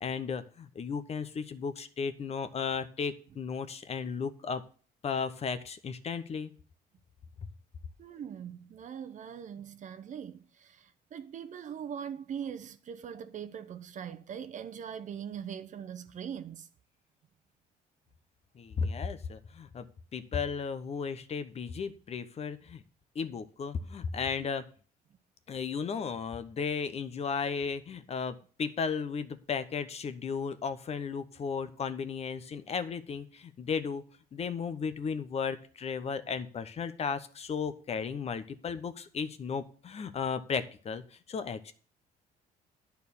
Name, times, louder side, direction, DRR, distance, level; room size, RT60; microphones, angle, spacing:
voice 1, 0.0-4.6 5.0-6.5 18.6-19.9 20.1-22.8 23.1-24.6 25.5-34.0 34.3-41.0 41.3-41.7, left 6 dB, 40° left, 0.8 m, -35 dB
voice 2, 8.0-16.7, right 8 dB, 45° right, 0.8 m, -41 dB
10.5 x 4.6 x 7.0 m
cardioid pair, 110°, 17 cm